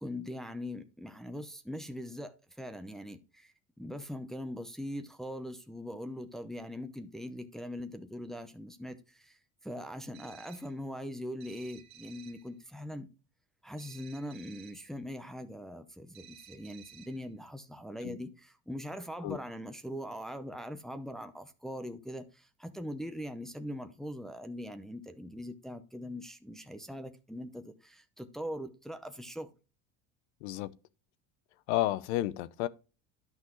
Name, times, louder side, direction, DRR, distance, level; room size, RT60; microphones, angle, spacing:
voice 1, 0.0-13.1 13.6-29.5, equal, ahead, 0.7 m, -41 dB
sound 1, 10.1-10.8 11.4-12.5 13.8-14.9 16.1-17.3, right 9 dB, 60° right, 1.9 m, -55 dB
voice 2, 30.4-30.7 31.7-32.7, left 15 dB, 90° left, 0.8 m, -31 dB
11.0 x 5.9 x 3.1 m
cardioid pair, 135°, 33 cm